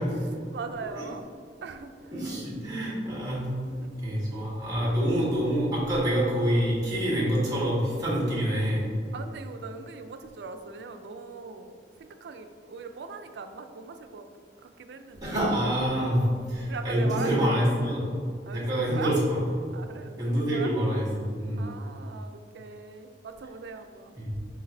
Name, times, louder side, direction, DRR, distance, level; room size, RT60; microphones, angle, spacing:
voice 1, 0.2-1.2 1.6-2.2 3.6-4.0 9.1-14.3 14.6-15.4 16.2-17.5 18.5-19.1 19.7-20.7 21.6-24.2, right 4 dB, 75° right, 7 dB, 0.4 m, -40 dB
voice 2, 2.1-3.5 4.0-8.8 15.2-16.2 16.5-18.1 18.5-19.2 20.2-21.7 24.1-24.4, equal, 20° right, -6 dB, 1.5 m, -26 dB
5.0 x 3.9 x 2.7 m, 2.2 s
head